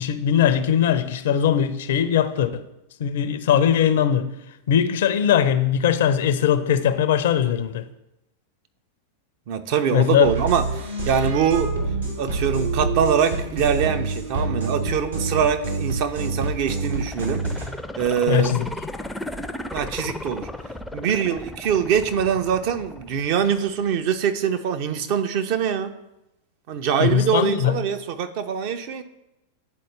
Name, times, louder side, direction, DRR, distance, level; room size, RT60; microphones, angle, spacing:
voice 1, 0.0-2.6 3.0-4.3 4.7-7.8 9.9-10.3 18.3-18.7 27.0-27.7, left 9 dB, 55° left, 0.5 m, -20 dB
voice 2, 9.5-11.7 12.2-17.4 18.0-18.6 19.7-20.5 20.9-25.9 26.7-29.0, right 8 dB, 45° right, 0.5 m, -23 dB
sound 1, 10.2-17.7, right 3 dB, 70° right, 1.2 m, -27 dB
sound 2, 16.8-23.7 24.1-24.2, left 1 dB, 5° left, 0.4 m, -35 dB
9.3 x 4.1 x 3.2 m
figure-of-eight pair, 90°, 0 cm